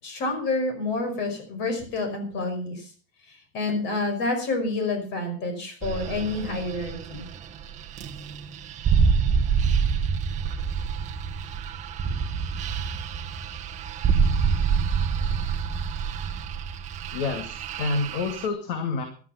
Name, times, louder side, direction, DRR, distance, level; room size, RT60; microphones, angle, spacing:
voice 1, 0.0-2.9 3.3-7.3, left 3 dB, 35° left, 6 dB, 5.4 m, -28 dB
sound 1, 5.8-18.5, right 6 dB, 20° right, 1.2 m, -26 dB
voice 2, 17.1-19.1, left 4 dB, 55° left, 6 dB, 2.4 m, -28 dB
14.0 x 12.0 x 5.8 m, 0.41 s
supercardioid pair, 180°, 33 cm